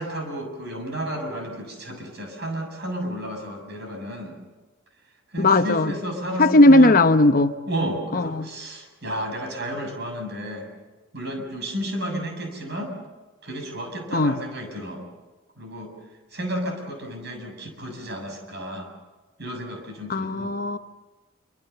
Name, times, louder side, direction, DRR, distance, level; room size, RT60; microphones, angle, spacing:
voice 1, 0.0-4.3 5.3-7.0 7.7-10.7 11.1-12.9 13.4-15.0 15.6-15.9 16.3-18.9 19.4-20.6, right 1 dB, 55° right, 4 dB, 6.8 m, -32 dB
voice 2, 5.4-5.9 6.4-7.6 8.1-8.5 14.1-14.4 20.1-20.8, left 2 dB, 45° left, 9 dB, 0.9 m, -17 dB
27.5 x 25.0 x 6.8 m, 1.2 s
head